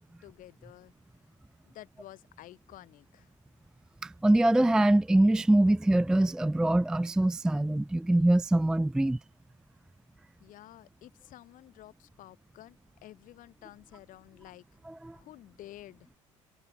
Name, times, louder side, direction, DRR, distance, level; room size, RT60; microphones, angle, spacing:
voice 1, 0.2-0.9 1.6-3.3 10.4-14.6 15.1-16.1, left 14 dB, 55° left, 5.9 m, -51 dB
voice 2, 4.0-9.2 14.9-15.2, right 1 dB, 5° right, 0.3 m, -24 dB
hypercardioid pair, 70°, 17 cm